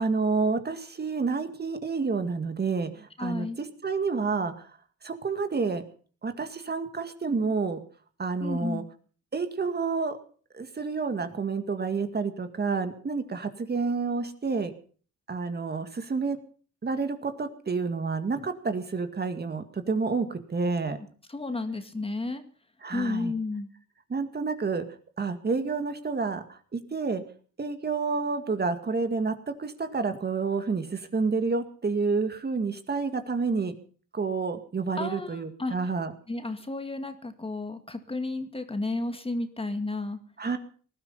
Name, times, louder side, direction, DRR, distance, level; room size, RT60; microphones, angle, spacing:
voice 1, 0.0-4.7 5.0-5.8 6.2-7.8 8.2-8.8 9.3-10.2 10.5-14.7 15.3-16.4 16.8-21.0 22.8-23.3 24.1-24.8 25.2-27.2 27.6-33.8 34.1-36.1 40.4-40.6, right 4 dB, 35° right, 8 dB, 2.1 m, -29 dB
voice 2, 3.2-3.6 8.4-8.9 21.3-22.4 22.9-23.7 35.0-35.7 36.3-40.2, left 2 dB, 20° left, 8 dB, 2.1 m, -32 dB
19.0 x 12.0 x 5.7 m, 0.43 s
cardioid pair, 90°, 30 cm